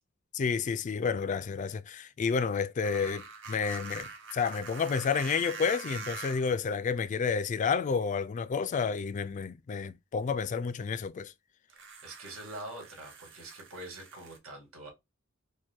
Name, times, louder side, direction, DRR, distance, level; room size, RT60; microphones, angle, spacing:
voice 1, 0.3-11.3, left 5 dB, 35° left, 0.3 m, -30 dB
sound 1, 2.8-6.6 7.6-7.7 11.7-14.4, right 5 dB, 60° right, 0.9 m, -44 dB
voice 2, 11.7-14.9, right 1 dB, 90° right, 1.9 m, -45 dB
5.1 x 2.2 x 3.5 m
head